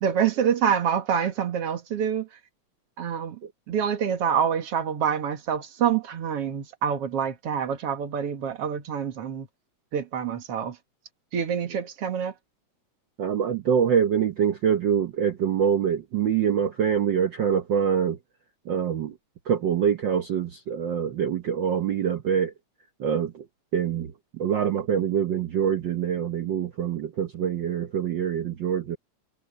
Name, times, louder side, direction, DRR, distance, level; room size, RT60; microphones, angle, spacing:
voice 1, 0.0-2.3 3.0-3.4 3.7-9.5 9.9-10.8 11.3-12.3, right 8 dB, 55° right, 2.7 m, -26 dB
voice 2, 13.2-18.2 18.7-19.2 19.5-22.5 23.0-23.4 23.7-29.0, right 8 dB, 75° right, 1.0 m, -25 dB
omnidirectional pair, 3.3 m